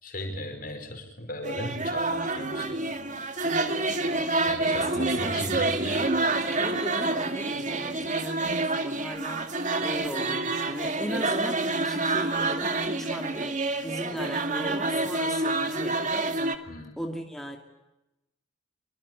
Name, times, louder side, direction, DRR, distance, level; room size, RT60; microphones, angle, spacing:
voice 1, 0.0-2.8 4.5-6.0 16.7-16.9, left 1 dB, 45° left, 6 dB, 5.0 m, -37 dB
sound 1, 1.4-16.6, right 2 dB, 40° right, 2.2 m, -28 dB
voice 2, 3.4-3.9 4.6-9.5 9.8-16.0 17.0-17.6, equal, ahead, 1 dB, 2.7 m, -38 dB
25.0 x 24.0 x 9.6 m, 0.95 s
head